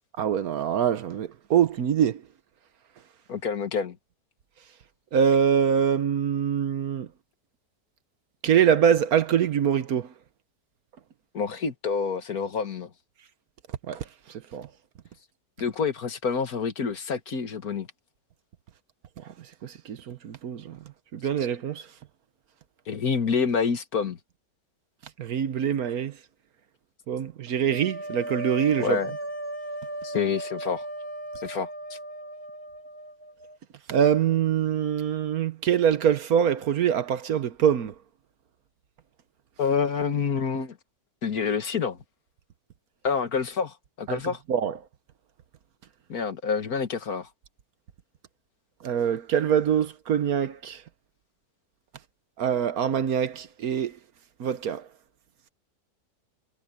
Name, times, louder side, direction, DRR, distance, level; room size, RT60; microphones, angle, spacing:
voice 1, 0.2-2.2 5.1-7.1 8.4-10.1 13.9-14.0 14.5-14.7 19.2-19.3 19.6-20.8 21.1-21.9 25.2-26.2 27.1-29.0 33.9-37.9 44.1-44.2 44.5-44.8 48.8-50.8 52.4-54.0 54.4-54.9, right 8 dB, 65° right, 1.3 m, -24 dB
voice 2, 3.3-4.0 11.3-12.9 15.6-17.9 22.9-24.2 28.8-29.1 30.0-30.8 31.4-32.0 39.6-40.8 41.2-42.0 43.0-44.4 46.1-47.3, left 6 dB, 60° left, 2.0 m, -27 dB
sound 1, 27.7-33.6, right 1 dB, 35° right, 5.2 m, -36 dB
omnidirectional pair, 1.8 m